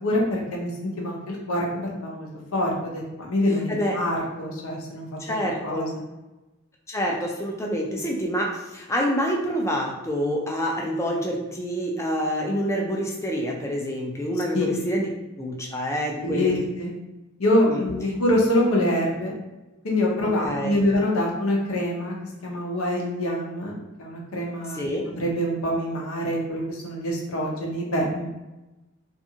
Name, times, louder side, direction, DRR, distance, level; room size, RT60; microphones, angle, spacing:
voice 1, 0.0-5.1 5.6-5.9 14.5-14.7 16.2-16.9 17.4-19.3 19.8-22.1 22.4-24.8 25.1-28.3, left 1 dB, 85° left, -2 dB, 0.7 m, -25 dB
voice 2, 5.2-6.0 6.9-15.1 15.4-16.5 17.7-17.8 20.4-20.7 24.7-25.1, equal, 15° left, 0 dB, 0.3 m, -27 dB
2.5 x 2.5 x 2.7 m, 1.1 s
head